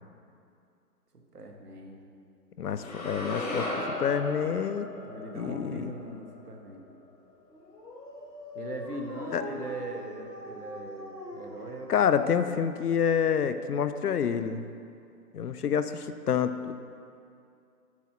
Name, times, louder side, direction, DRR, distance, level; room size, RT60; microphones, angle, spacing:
voice 1, 1.1-2.0 5.1-6.9 8.5-12.1, right 2 dB, 70° right, 2 dB, 1.2 m, -40 dB
voice 2, 2.6-4.9 5.4-5.9 9.3-9.4 11.9-14.6 15.3-16.7, left 7 dB, 70° left, 11 dB, 0.6 m, -28 dB
sound 1, 2.8-7.0, left 2 dB, 25° left, 1.1 m, -36 dB
Dog, 7.5-13.2, left 2 dB, 90° left, 1.3 m, -43 dB
8.4 x 4.6 x 5.8 m, 2.5 s
figure-of-eight pair, 145°, 49 cm